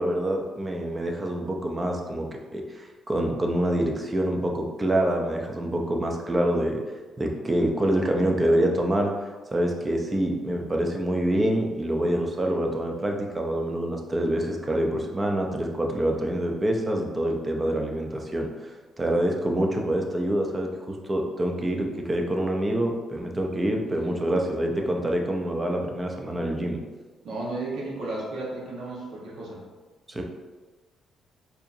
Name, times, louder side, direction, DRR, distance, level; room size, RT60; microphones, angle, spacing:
voice 1, 0.0-2.3 2.5-6.8 7.2-9.1 9.5-18.5 19.0-26.8 30.1-30.2, right 1 dB, 25° right, 2 dB, 0.6 m, -26 dB
voice 2, 23.8-24.2 27.2-29.6, right 2 dB, 70° right, -4 dB, 1.1 m, -34 dB
4.3 x 2.8 x 2.6 m, 1.3 s
cardioid pair, 90°, 0 cm